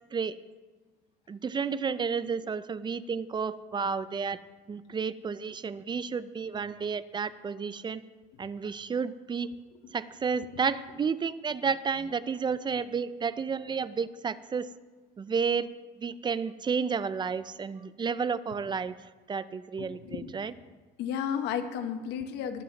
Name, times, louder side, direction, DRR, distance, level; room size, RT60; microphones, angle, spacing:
voice 1, 1.3-4.4 4.7-8.0 8.4-9.5 9.9-14.7 15.2-15.7 16.0-18.9 19.3-20.5, right 5 dB, 25° right, 15 dB, 0.5 m, -31 dB
voice 2, 19.8-20.3 21.0-22.6, left 8 dB, 85° left, 9 dB, 1.0 m, -33 dB
21.5 x 7.5 x 4.0 m, 1.3 s
cardioid pair, 110°, 17 cm